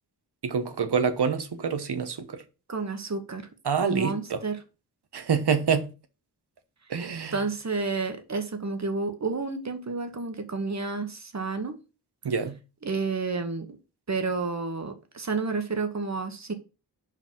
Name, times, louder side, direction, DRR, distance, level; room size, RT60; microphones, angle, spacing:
voice 1, 0.4-2.4 3.6-4.4 5.1-5.9 6.9-7.4 12.2-12.6, right 6 dB, 75° right, 1.1 m, -26 dB
voice 2, 2.7-3.5 3.8-4.6 7.3-11.8 12.8-13.8 14.1-16.5, right 4 dB, 40° right, 1.2 m, -30 dB
5.3 x 5.1 x 5.9 m
wide cardioid pair, 100°, 40 cm